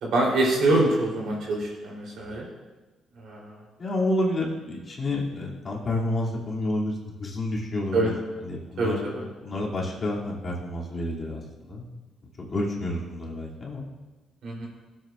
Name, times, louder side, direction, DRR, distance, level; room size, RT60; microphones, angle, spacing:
voice 1, 0.0-2.5 3.2-3.6 7.9-8.1 8.8-9.2 14.4-14.7, right 2 dB, 70° right, -3 dB, 3.5 m, -25 dB
voice 2, 3.8-8.1 8.4-9.0 9.4-11.9 12.4-13.9, left 1 dB, 40° left, -3 dB, 2.7 m, -29 dB
17.0 x 7.8 x 2.5 m, 1.2 s
cardioid pair, 90°, 0 cm